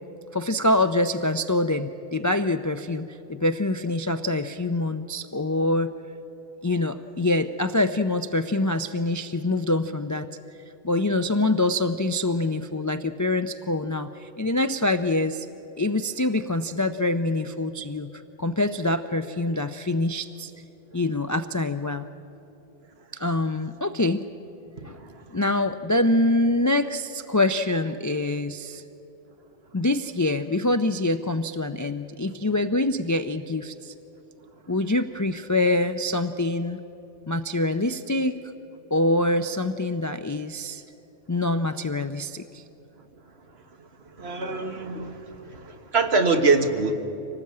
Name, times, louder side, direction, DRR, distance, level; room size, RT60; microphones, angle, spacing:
voice 1, 0.3-5.9 6.6-10.3 10.8-15.5 15.8-20.5 20.9-22.1 23.1-24.3 24.8-25.0 25.3-28.8 29.7-33.9 34.7-36.8 37.3-38.4 38.9-40.8 41.3-42.6, left 2 dB, 30° left, 9 dB, 0.3 m, -25 dB
voice 2, 44.2-45.2 45.5-46.9, right 3 dB, 65° right, 5 dB, 1.6 m, -23 dB
25.0 x 18.0 x 8.6 m, 3.0 s
omnidirectional pair, 1.2 m